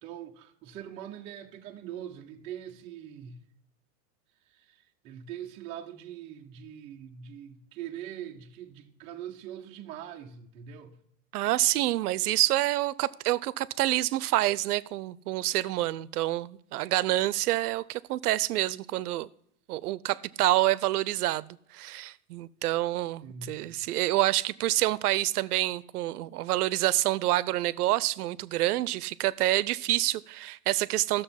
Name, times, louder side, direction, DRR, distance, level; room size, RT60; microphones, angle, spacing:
voice 1, 0.0-3.4 4.5-11.0 23.2-23.8, right 10 dB, 15° right, 0.4 m, -42 dB
voice 2, 11.3-19.3 19.7-31.2, right 16 dB, 80° right, 0.6 m, -27 dB
13.0 x 6.6 x 5.6 m
supercardioid pair, 150°, 45 cm